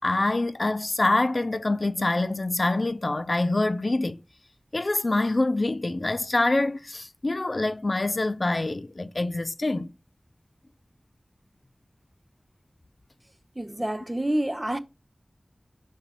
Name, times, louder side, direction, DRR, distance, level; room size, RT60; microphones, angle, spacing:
voice 1, 0.0-4.2 4.7-9.9, left 2 dB, 55° left, 0.4 m, -25 dB
voice 2, 13.6-14.8, right 1 dB, 25° right, 0.6 m, -28 dB
6.0 x 4.0 x 4.1 m
wide cardioid pair, 40°, 0 cm